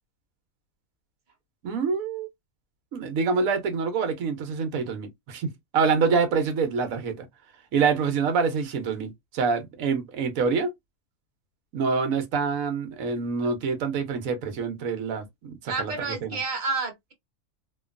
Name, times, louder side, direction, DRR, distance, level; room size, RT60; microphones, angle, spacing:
voice 1, 1.6-2.3 2.9-7.3 7.7-10.7 11.7-16.4, right 5 dB, 70° right, 1.1 m, -26 dB
voice 2, 15.7-17.1, right 4 dB, 45° right, 0.6 m, -30 dB
2.9 x 2.2 x 2.4 m
omnidirectional pair, 1.5 m